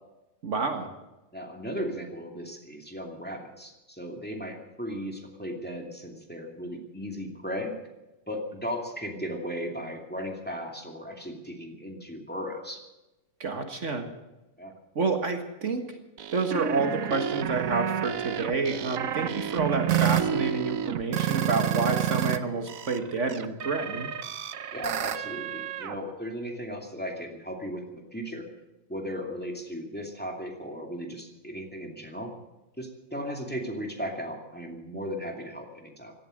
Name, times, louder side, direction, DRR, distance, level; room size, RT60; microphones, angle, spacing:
voice 1, 0.4-0.9 13.4-14.1 15.0-16.0 16.3-24.1, right 4 dB, 60° right, 6 dB, 1.9 m, -29 dB
voice 2, 1.3-7.7 8.3-12.8 14.6-14.8 24.7-28.5 28.9-32.3 32.8-36.1, equal, 5° left, 2 dB, 2.5 m, -36 dB
sound 1, 16.2-22.4 22.7-26.0, right 10 dB, 80° right, 1.3 m, -29 dB
17.5 x 12.5 x 6.5 m, 1.0 s
omnidirectional pair, 1.4 m